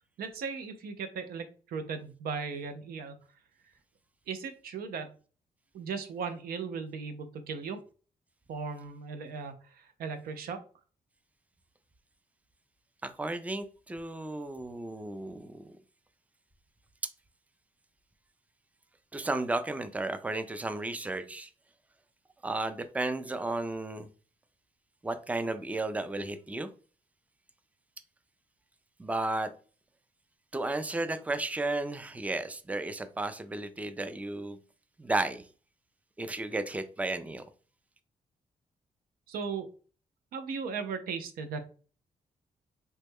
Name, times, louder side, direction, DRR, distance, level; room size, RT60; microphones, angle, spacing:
voice 1, 0.2-3.2 4.3-5.1 5.7-7.8 8.5-10.6 39.3-39.7 40.3-41.6, right 5 dB, 85° right, 8 dB, 0.6 m, -37 dB
voice 2, 13.0-15.8 19.1-21.5 22.4-24.1 25.0-26.7 29.0-29.5 30.5-34.6 35.0-35.4 36.2-37.4, right 2 dB, 10° right, 10 dB, 0.4 m, -33 dB
3.1 x 2.1 x 3.4 m, 0.38 s
supercardioid pair, 60°, 15 cm